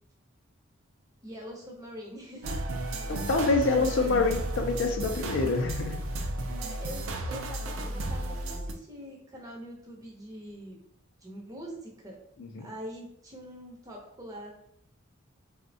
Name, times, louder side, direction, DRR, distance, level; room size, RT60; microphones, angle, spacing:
voice 1, 1.2-2.6 3.7-4.2 6.5-10.8 11.2-12.2 12.6-14.5, equal, 15° right, -2 dB, 0.6 m, -43 dB
sound 1, 2.4-8.7, right 1 dB, 65° right, 0.4 m, -33 dB
voice 2, 3.1-6.0 12.4-12.7, left 3 dB, 60° left, 4 dB, 0.4 m, -26 dB
3.3 x 2.1 x 2.6 m, 0.69 s
head